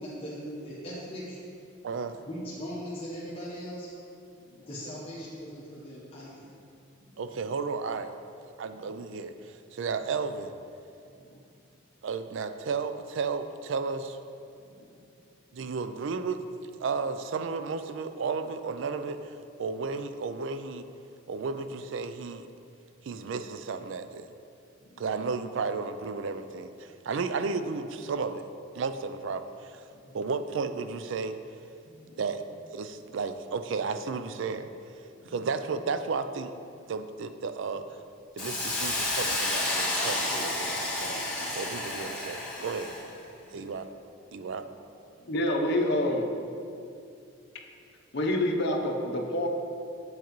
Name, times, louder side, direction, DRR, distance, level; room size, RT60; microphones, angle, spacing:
voice 1, 0.0-1.4 2.3-3.9 4.7-6.5, equal, 30° left, -7 dB, 1.0 m, -39 dB
voice 2, 1.8-2.2 7.2-8.1 8.6-10.5 12.0-14.2 15.5-16.4 16.8-20.8 21.3-22.4 23.0-24.3 25.0-28.4 28.7-29.9 30.1-31.4 32.2-32.4 32.7-36.5 36.9-38.0 38.4-42.9 43.5-43.9 44.3-44.6, right 4 dB, 65° right, 10 dB, 0.4 m, -33 dB
Hiss, 38.4-43.1, left 1 dB, 5° left, 1.4 m, -30 dB
voice 3, 45.3-46.3 48.1-49.5, left 1 dB, 55° left, 2 dB, 0.7 m, -27 dB
7.9 x 7.1 x 3.0 m, 2.5 s
head